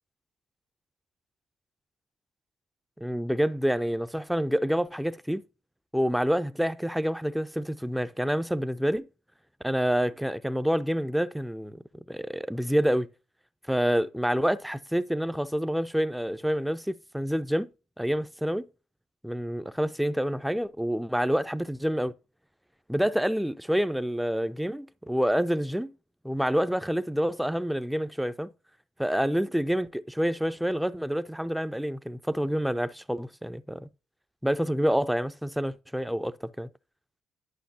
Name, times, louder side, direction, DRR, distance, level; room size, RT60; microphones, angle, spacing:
voice 1, 3.0-5.4 5.9-9.1 9.6-11.8 12.1-13.1 13.7-17.7 18.0-18.7 19.2-22.1 22.9-25.9 26.2-28.5 29.0-33.9 34.4-36.7, equal, ahead, 0.4 m, -27 dB
11.5 x 6.0 x 2.8 m
cardioid pair, 140°, 0 cm